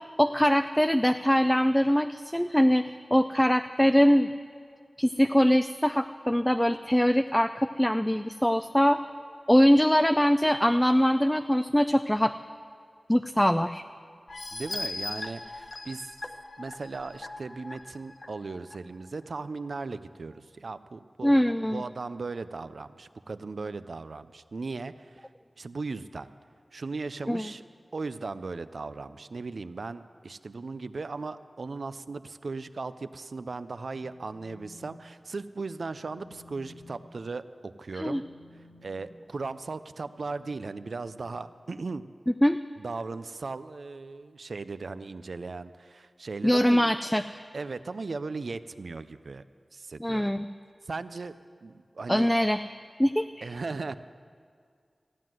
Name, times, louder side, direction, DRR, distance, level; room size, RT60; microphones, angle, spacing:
voice 1, 0.2-2.8 3.1-4.3 5.0-9.0 9.5-12.4 13.1-13.8 21.2-21.8 27.3-27.5 38.0-38.2 42.4-42.6 46.4-47.4 50.0-50.4 52.1-52.6 53.0-53.5, equal, 10° left, 9 dB, 0.3 m, -23 dB
sound 1, 14.3-18.8 19.2-19.3 19.7-19.8, left 2 dB, 55° left, 0.9 m, -39 dB
voice 2, 14.5-16.2 16.6-21.4 21.6-25.3 25.6-26.3 26.7-27.6 27.9-38.2 38.8-42.1 42.8-46.9 47.5-49.4 49.7-50.3 50.9-51.3 51.6-52.3 53.4-54.0, right 3 dB, 75° right, 13 dB, 0.4 m, -37 dB
Telephone, 33.9-34.9 35.3-35.5 35.9-42.0, left 2 dB, 80° left, 2.4 m, -55 dB
15.0 x 9.3 x 7.6 m, 2.1 s
wide cardioid pair, 80°, 0 cm